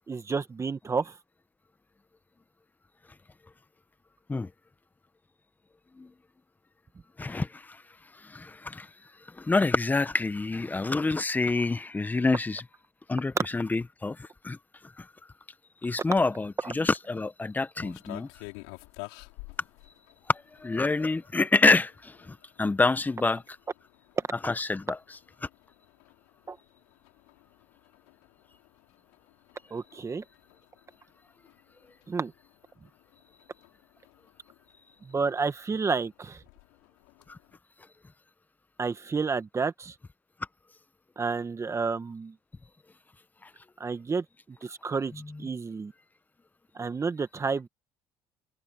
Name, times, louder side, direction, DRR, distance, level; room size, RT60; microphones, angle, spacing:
voice 1, 0.1-1.1 26.5-26.6 29.7-30.2 32.1-32.3 35.1-36.4 38.8-39.9 41.2-42.3 43.8-44.2 44.6-45.1 45.4-45.9 46.7-47.7, right 4 dB, 30° right, 1.6 m, -30 dB
voice 2, 7.2-7.8 8.1-8.9 9.3-12.6 13.1-14.6 15.0-15.1 15.8-18.3 20.3-23.4 24.4-25.0 25.4-25.5 37.3-37.4 43.4-43.5 45.1-45.5, left 3 dB, 15° left, 1.0 m, -27 dB
sound 1, 17.8-37.6, left 29 dB, 90° left, 6.3 m, -52 dB
supercardioid pair, 80°, 10 cm